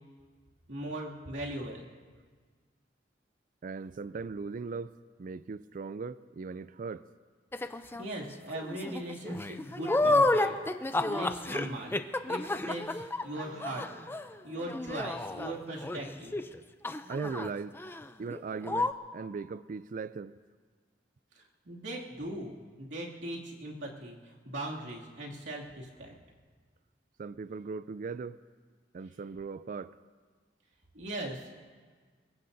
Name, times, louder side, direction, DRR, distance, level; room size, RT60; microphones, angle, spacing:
voice 1, 0.7-1.9 8.0-10.6 11.1-11.9 12.3-13.9 14.4-16.5 21.4-26.1 30.9-31.5, right 1 dB, 80° right, 2.5 m, -39 dB
voice 2, 3.6-7.0 17.1-17.8 18.2-20.4 27.2-28.4 28.9-29.9, right 4 dB, 45° right, 0.4 m, -39 dB
sound 1, 7.5-8.1 8.5-16.6 16.8-17.5 17.7-18.0 18.3-18.4 18.6-18.9, left 2 dB, 10° left, 0.5 m, -31 dB
sound 2, 13.2-15.0, left 2 dB, 55° left, 2.8 m, -54 dB
23.5 x 21.5 x 2.7 m
head